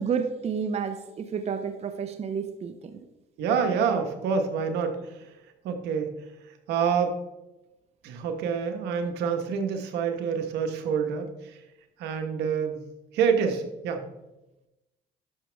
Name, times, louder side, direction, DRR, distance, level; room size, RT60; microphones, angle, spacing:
voice 1, 0.0-3.0, right 6 dB, 40° right, 7 dB, 0.8 m, -30 dB
voice 2, 3.4-5.3 5.6-6.2 6.4-7.2 8.0-11.6 12.0-12.8 13.1-14.0, right 6 dB, 85° right, 5 dB, 1.3 m, -27 dB
11.5 x 6.1 x 3.5 m, 0.96 s
cardioid pair, 110°, 17 cm